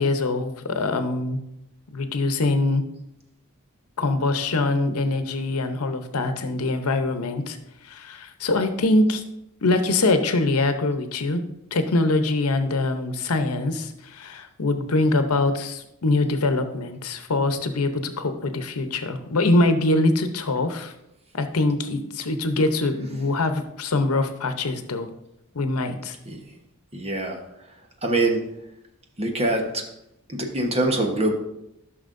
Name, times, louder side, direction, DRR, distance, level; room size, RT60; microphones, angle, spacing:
voice 1, 0.0-1.4 1.9-2.8 4.0-7.6 7.8-9.2 9.6-11.4 11.7-20.9 21.3-25.1 25.5-26.1, left 2 dB, 85° left, 8 dB, 0.8 m, -23 dB
voice 2, 26.9-27.4 28.0-28.4 29.2-29.8 30.3-31.3, right 2 dB, 30° right, 3 dB, 1.0 m, -24 dB
12.5 x 6.1 x 2.6 m, 0.83 s
head